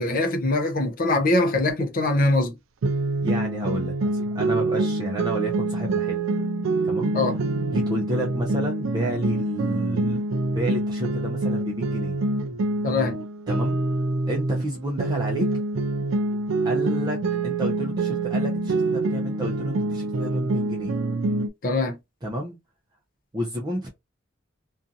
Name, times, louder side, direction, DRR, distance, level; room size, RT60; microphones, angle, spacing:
voice 1, 0.0-2.5 7.1-7.3 12.8-13.2 21.6-22.0, left 2 dB, 45° left, 0.6 m, -22 dB
sound 1, 2.8-14.7 15.0-21.5, right 2 dB, 85° right, 0.4 m, -25 dB
voice 2, 3.2-6.2 6.8-7.4 7.7-10.2 10.6-12.2 13.5-13.8 14.3-15.5 16.6-20.9 22.2-22.6 23.3-23.9, equal, 20° right, 0.5 m, -31 dB
2.6 x 2.3 x 2.6 m
head